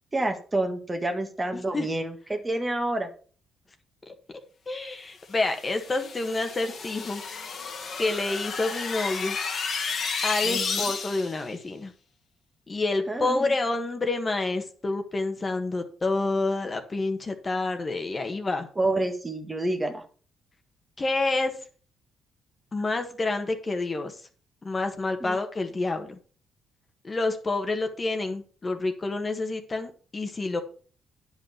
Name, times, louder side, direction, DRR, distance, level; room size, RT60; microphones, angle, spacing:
voice 1, 0.1-3.1 10.4-10.9 13.1-13.5 18.8-20.0 25.2-25.4, right 2 dB, 20° right, 5 dB, 1.6 m, -28 dB
voice 2, 1.5-1.9 4.1-4.2 4.7-7.2 8.0-9.4 10.2-11.9 12.7-18.7 21.0-21.5 22.7-24.1 24.6-26.2 27.0-30.6, left 2 dB, 30° left, 6 dB, 1.5 m, -28 dB
sound 1, 5.4-11.4, left 5 dB, 55° left, 1.7 m, -32 dB
9.8 x 5.6 x 5.8 m, 0.41 s
cardioid pair, 90°, 0 cm